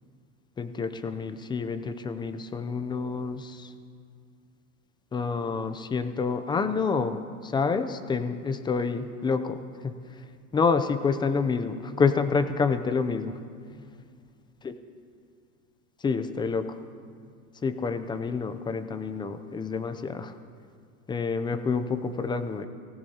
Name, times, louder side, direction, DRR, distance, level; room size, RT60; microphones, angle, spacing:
voice 1, 0.6-3.7 5.1-9.9 10.5-13.4 14.6-14.7 16.0-16.8 17.6-20.3 21.1-22.7, left 5 dB, 10° left, 10 dB, 0.5 m, -28 dB
19.0 x 16.5 x 2.8 m, 2.2 s
supercardioid pair, 125°, 42 cm